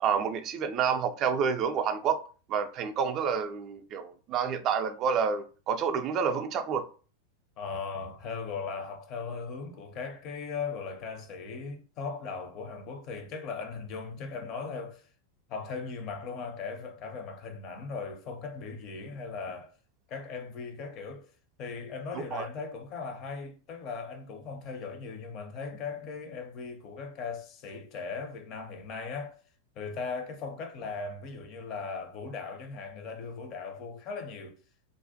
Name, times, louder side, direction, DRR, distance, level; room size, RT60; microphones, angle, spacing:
voice 1, 0.0-2.2 2.5-6.9 22.3-22.5, right 6 dB, 35° right, 0.3 m, -29 dB
voice 2, 7.6-15.1 15.5-19.7 20.1-21.3 21.6-29.4 29.8-34.6, left 5 dB, 35° left, 0.5 m, -38 dB
2.5 x 2.1 x 2.6 m
figure-of-eight pair, 90°, 0 cm